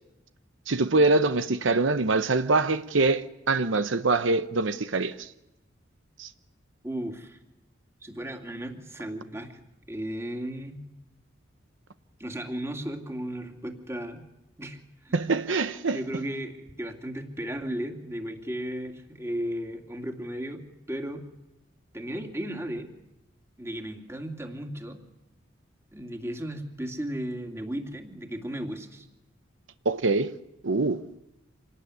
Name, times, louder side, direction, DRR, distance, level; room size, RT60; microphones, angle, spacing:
voice 1, 0.7-5.3 6.2-6.3 15.1-16.0 29.8-30.4 30.6-31.1, right 3 dB, 75° right, 0.9 m, -24 dB
voice 2, 6.8-7.4 8.0-9.6 9.9-10.8 12.2-14.2 14.6-15.2 15.9-20.6 20.9-21.2 21.9-22.9 23.6-25.0 25.9-29.1, right 1 dB, 15° right, 2.6 m, -35 dB
27.0 x 19.0 x 9.8 m
head